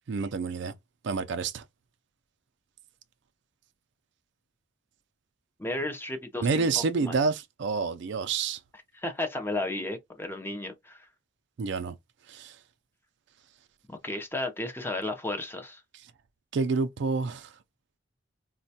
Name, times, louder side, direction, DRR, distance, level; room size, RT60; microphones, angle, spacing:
voice 1, 0.1-0.7 1.0-1.6 6.4-8.6 11.6-11.9 12.3-12.5 16.5-17.5, right 4 dB, 65° right, 0.4 m, -28 dB
voice 2, 5.6-7.2 8.9-11.1 13.9-15.8, left 2 dB, 10° left, 0.6 m, -34 dB
4.0 x 2.2 x 2.7 m
head